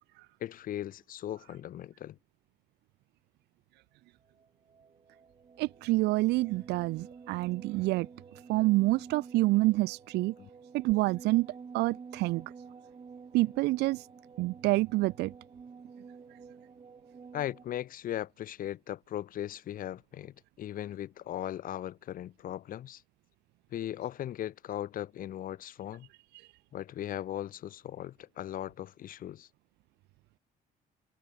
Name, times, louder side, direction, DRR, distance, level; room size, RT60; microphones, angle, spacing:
voice 1, 0.4-2.2 10.4-10.5 17.3-23.0 23.7-26.1 26.7-29.5, left 12 dB, 55° left, 1.0 m, -38 dB
sound 1, 4.2-17.6, right 5 dB, 30° right, 7.0 m, -50 dB
voice 2, 5.6-8.1 8.5-10.3 10.7-11.5 11.7-12.5 13.3-14.1 14.4-15.3 26.3-26.5, right 20 dB, 85° right, 0.7 m, -27 dB
cardioid pair, 110°, 17 cm